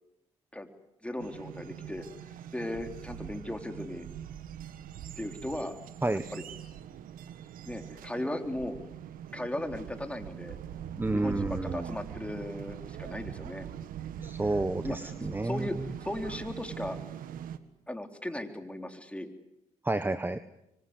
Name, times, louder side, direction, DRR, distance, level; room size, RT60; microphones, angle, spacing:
voice 1, 1.0-2.1 2.5-4.1 5.2-5.8 6.1-6.4 7.6-8.8 9.3-10.6 11.1-13.7 14.8-15.1 15.4-17.0 17.9-19.3, left 1 dB, 10° left, 5 dB, 3.9 m, -37 dB
sound 1, 1.2-17.6, right 10 dB, 70° right, 1.7 m, -42 dB
voice 2, 11.0-11.9 14.2-15.7 19.8-20.4, right 2 dB, 15° right, 12 dB, 1.3 m, -30 dB
26.0 x 25.0 x 8.2 m, 0.87 s
supercardioid pair, 60°, 15 cm